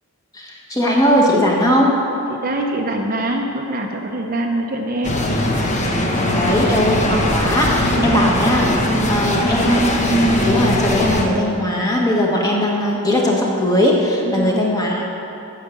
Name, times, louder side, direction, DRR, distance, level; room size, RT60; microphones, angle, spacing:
voice 1, 0.3-1.9 6.2-8.7 9.1-15.1, equal, 15° left, -3 dB, 1.5 m, -18 dB
voice 2, 2.3-5.2 7.9-8.3 14.2-14.6, right 1 dB, 40° right, 1 dB, 0.8 m, -24 dB
sound 1, 5.0-11.3, left 1 dB, 35° left, 1.0 m, -20 dB
9.1 x 6.7 x 8.3 m, 2.9 s
head